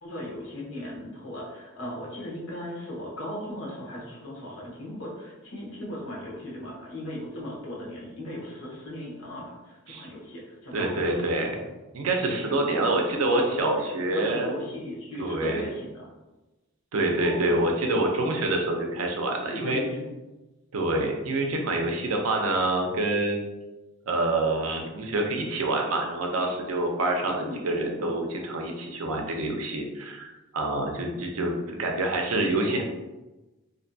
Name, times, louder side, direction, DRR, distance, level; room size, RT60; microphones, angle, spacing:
voice 1, 0.0-11.3 12.7-16.1 17.1-17.6 19.4-20.1 27.2-28.1 32.7-32.8, left 1 dB, 70° left, -4 dB, 0.8 m, -37 dB
voice 2, 10.7-11.5 11.9-14.7 15.2-15.6 16.9-19.8 20.7-23.5 24.1-31.5 31.8-32.8, right 2 dB, 75° right, 2 dB, 0.5 m, -26 dB
2.6 x 2.2 x 2.5 m, 1.1 s
head